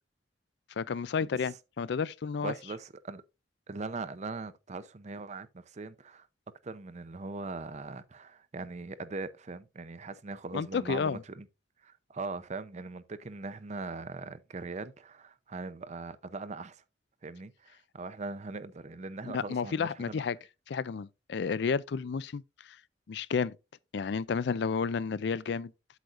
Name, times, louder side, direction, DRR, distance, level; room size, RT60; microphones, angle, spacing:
voice 1, 0.8-2.5 10.5-11.2 19.2-20.4 20.7-22.8 23.1-23.6 23.9-25.7, left 5 dB, 65° left, 0.4 m, -31 dB
voice 2, 2.4-3.2 3.7-6.3 6.6-11.5 11.8-16.8 17.2-20.2, right 3 dB, 40° right, 0.6 m, -40 dB
8.2 x 7.8 x 2.5 m
head